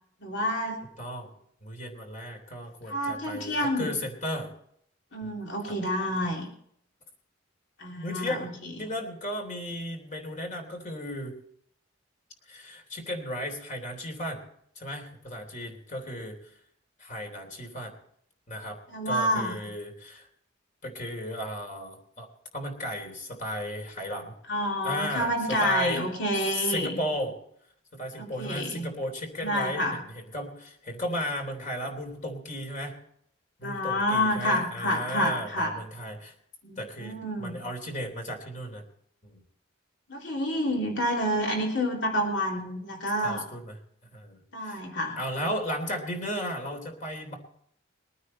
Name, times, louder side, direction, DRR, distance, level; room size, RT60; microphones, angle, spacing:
voice 1, 0.2-0.8 2.9-3.9 5.1-6.5 7.8-8.7 18.9-19.6 24.5-27.0 28.2-28.9 29.4-30.0 33.6-35.7 36.6-37.6 40.1-43.4 44.5-45.2, equal, 65° left, 0 dB, 3.3 m, -28 dB
voice 2, 1.0-1.3 1.6-4.5 5.2-5.3 7.9-8.5 8.8-11.3 12.5-14.4 14.7-16.4 17.0-17.9 18.5-18.8 19.0-20.3 20.8-22.3 22.5-24.3 24.8-26.0 26.3-27.4 27.9-29.9 30.1-33.0 33.6-36.3 36.8-38.8 39.2-39.4 43.2-43.7 44.1-44.8 45.2-47.4, equal, 40° left, 4 dB, 3.2 m, -35 dB
22.0 x 9.5 x 4.3 m, 0.68 s
head